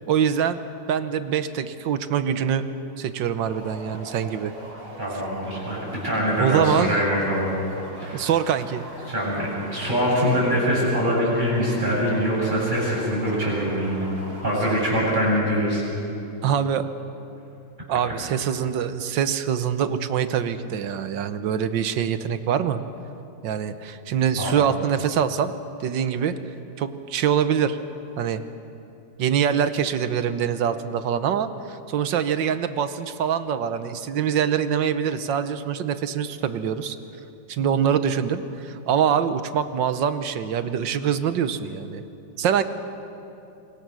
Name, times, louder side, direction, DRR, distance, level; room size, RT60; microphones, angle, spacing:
voice 1, 0.1-0.6 0.9-2.7 3.0-4.5 6.4-7.0 8.1-8.8 16.4-16.9 17.9-22.8 23.4-25.5 25.8-26.3 26.8-27.8 28.2-28.4 29.2-37.0 37.5-42.0 42.4-42.6, right 8 dB, 75° right, 11 dB, 1.6 m, -24 dB
sound 1, 3.5-14.9, right 1 dB, 50° right, 4.1 m, -41 dB
voice 2, 5.0-7.5 8.0-8.3 9.1-14.0 14.4-15.8 24.4-24.5, equal, 25° right, -5 dB, 7.6 m, -23 dB
26.0 x 22.5 x 6.3 m, 2.9 s
omnidirectional pair, 2.1 m